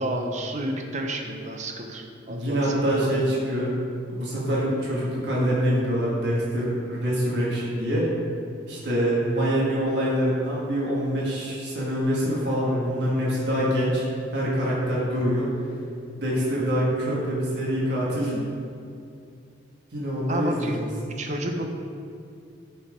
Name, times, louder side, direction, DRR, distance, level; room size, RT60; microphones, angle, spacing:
voice 1, 0.0-3.3 20.3-20.8 21.2-21.7, right 1 dB, 40° right, 3 dB, 0.7 m, -31 dB
voice 2, 2.3-3.8 4.1-8.0 8.7-14.0 14.3-15.5 16.2-18.4 19.9-20.9, equal, 60° right, -6 dB, 1.6 m, -25 dB
9.2 x 4.5 x 4.9 m, 2.5 s
head